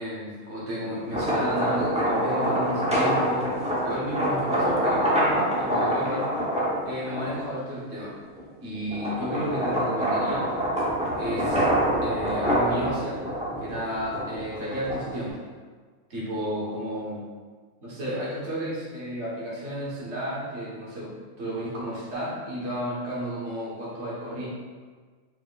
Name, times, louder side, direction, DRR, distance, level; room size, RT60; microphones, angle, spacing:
voice 1, 0.0-3.6 3.8-6.3 6.8-8.2 8.6-10.5 11.2-11.6 12.0-13.2 13.6-15.4 16.1-17.2 17.8-24.5, equal, 55° right, -6 dB, 1.5 m, -32 dB
sound 1, 1.0-7.6 8.1-15.3, equal, 5° right, 0.6 m, -26 dB
4.4 x 4.2 x 2.3 m, 1.5 s
omnidirectional pair, 1.4 m